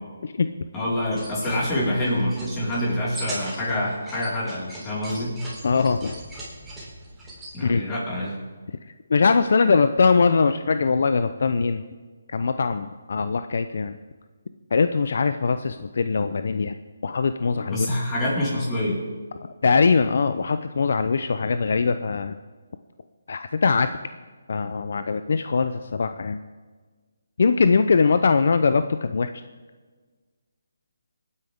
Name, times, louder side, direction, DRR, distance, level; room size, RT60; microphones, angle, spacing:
voice 1, 0.7-5.4 7.5-8.3 17.7-19.0, left 1 dB, 15° left, -6 dB, 4.8 m, -26 dB
sound 1, 1.0-7.5, right 1 dB, 5° right, 3.6 m, -39 dB
voice 2, 5.6-6.1 7.6-7.8 9.1-11.8 12.3-13.9 14.7-16.7 17.0-17.9 19.6-22.4 23.3-23.9 24.5-26.4 27.4-29.3, left 4 dB, 60° left, 10 dB, 0.6 m, -21 dB
24.0 x 9.7 x 3.6 m, 1.4 s
hypercardioid pair, 160°, 0 cm